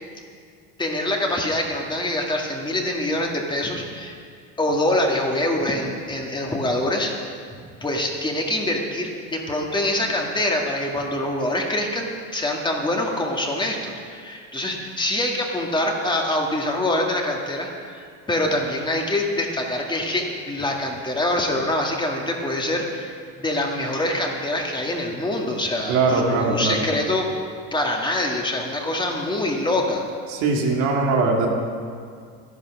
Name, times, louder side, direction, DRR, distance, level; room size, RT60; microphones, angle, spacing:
voice 1, 0.8-4.2 4.6-7.1 7.8-27.3 27.7-30.0, left 1 dB, 15° left, 0 dB, 2.0 m, -25 dB
voice 2, 25.9-26.9 30.3-31.5, right 3 dB, 70° right, 0 dB, 2.4 m, -21 dB
12.0 x 11.0 x 6.1 m, 2.2 s
supercardioid pair, 105°, 30 cm